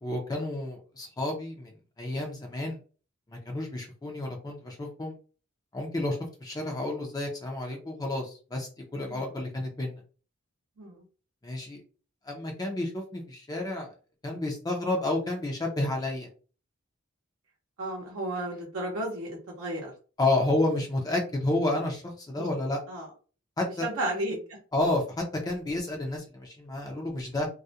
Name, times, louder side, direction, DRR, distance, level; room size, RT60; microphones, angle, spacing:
voice 1, 0.0-2.8 3.3-5.1 5.7-9.9 11.4-11.8 12.3-13.9 14.2-16.3 20.2-22.8 23.6-23.9 24.7-27.5, left 2 dB, 20° left, 1 dB, 0.5 m, -30 dB
voice 2, 17.8-19.9 22.4-22.5 22.9-23.1 23.8-24.4, right 1 dB, 75° right, -1 dB, 0.6 m, -33 dB
2.3 x 2.1 x 2.7 m, 0.37 s
head